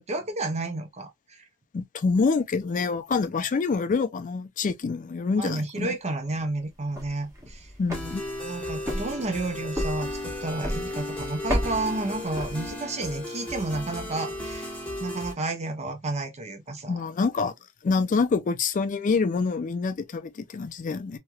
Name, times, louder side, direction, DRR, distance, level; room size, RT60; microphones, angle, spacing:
voice 1, 0.0-1.5 5.4-7.7 8.4-14.7 15.0-17.0, right 2 dB, 30° right, 0.7 m, -31 dB
voice 2, 1.7-5.9 7.8-8.2 16.9-17.5 17.8-21.2, left 4 dB, 35° left, 0.3 m, -26 dB
sound 1, 6.8-13.1, equal, 15° right, 1.2 m, -34 dB
sound 2, 7.9-15.3, left 1 dB, 5° left, 1.1 m, -35 dB
3.1 x 2.9 x 2.2 m
head